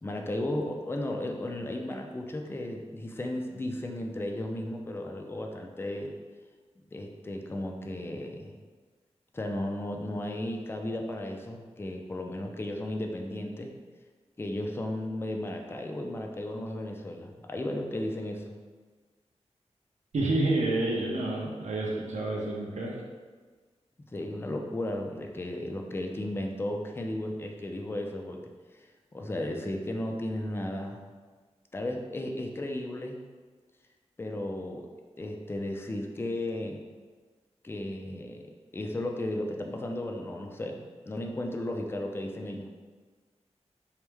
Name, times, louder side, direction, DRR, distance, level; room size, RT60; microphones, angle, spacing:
voice 1, 0.0-6.1 6.9-8.6 9.3-13.7 14.4-18.6 24.1-28.4 28.7-31.0 31.7-33.2 34.2-34.9 35.2-36.8 37.6-38.4 38.7-42.7, left 1 dB, 20° left, 2 dB, 0.3 m, -34 dB
voice 2, 20.1-22.9, right 2 dB, 80° right, -2 dB, 0.7 m, -29 dB
4.6 x 2.1 x 3.3 m, 1.4 s
wide cardioid pair, 105°, 12 cm